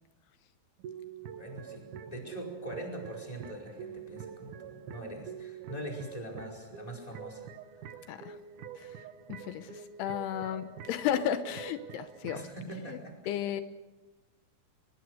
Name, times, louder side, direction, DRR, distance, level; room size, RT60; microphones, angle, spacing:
sound 1, 0.8-12.6, right 8 dB, 65° right, 2.2 m, -46 dB
voice 1, 1.3-7.5 12.3-13.1, right 1 dB, 10° left, 0 dB, 4.8 m, -42 dB
voice 2, 9.3-12.4 12.9-13.0 13.3-13.6, left 10 dB, 85° left, 10 dB, 3.0 m, -33 dB
23.5 x 22.0 x 6.5 m, 1.1 s
omnidirectional pair, 4.6 m